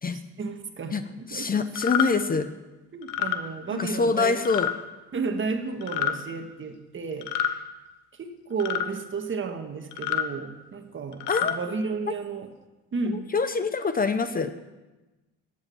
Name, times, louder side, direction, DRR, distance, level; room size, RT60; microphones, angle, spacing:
voice 1, 0.1-1.6 2.9-4.4 5.1-7.6 8.1-12.5 12.9-13.3, right 4 dB, 40° right, 6 dB, 1.6 m, -33 dB
voice 2, 1.3-2.5 3.7-4.7 11.3-11.6 13.1-14.5, left 4 dB, 30° left, 11 dB, 0.8 m, -25 dB
sound 1, 1.8-2.1 3.0-3.4 4.5-4.7 5.8-6.2 7.2-7.6 8.6-8.9 9.9-10.3 11.1-11.5, left 10 dB, 80° left, 1.0 m, -27 dB
13.0 x 8.4 x 7.0 m, 1.1 s
supercardioid pair, 80°, 30 cm